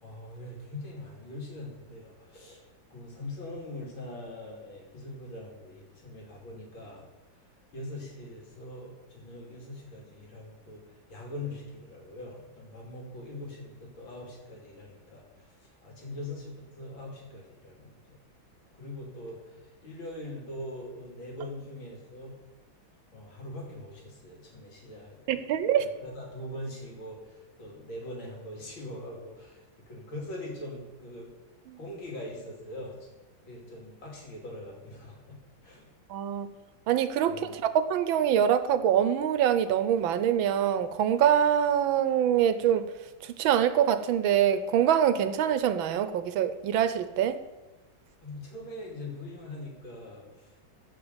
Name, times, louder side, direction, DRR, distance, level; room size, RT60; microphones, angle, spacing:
voice 1, 0.0-7.1 7.7-18.2 18.7-22.4 23.1-25.5 25.8-31.3 31.8-33.0 33.5-35.9 37.3-37.5 48.2-50.6, left 1 dB, 80° left, -2 dB, 3.5 m, -42 dB
voice 2, 25.3-25.8 36.1-36.5 36.9-37.6 37.9-42.9 43.2-47.4, right 9 dB, 85° right, 12 dB, 1.5 m, -24 dB
13.0 x 5.6 x 8.0 m, 1.2 s
omnidirectional pair, 2.1 m